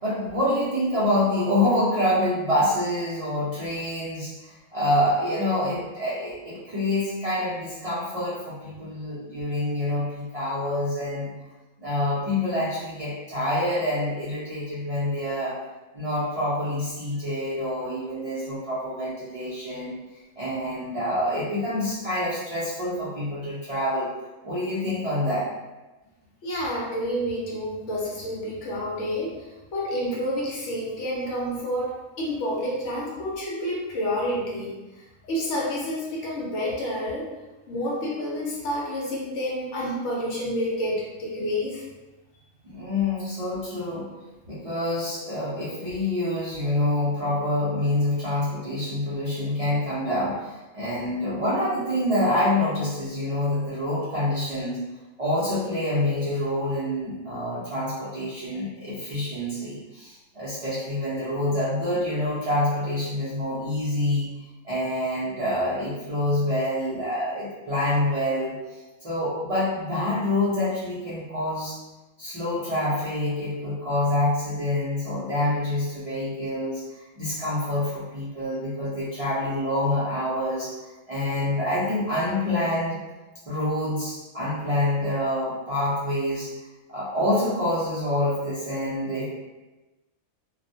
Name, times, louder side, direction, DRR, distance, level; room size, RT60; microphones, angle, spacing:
voice 1, 0.0-11.3 11.8-15.6 15.9-19.9 20.4-24.1 24.4-25.5 42.6-44.1 44.5-54.8 55.2-64.3 64.6-71.8 72.2-83.0 83.5-86.5 86.9-89.2, left 1 dB, 45° right, -11 dB, 0.4 m, -26 dB
voice 2, 26.4-34.8 35.2-37.3 37.7-41.9, equal, 65° left, -4 dB, 0.9 m, -29 dB
2.3 x 2.1 x 2.7 m, 1.1 s
omnidirectional pair, 1.4 m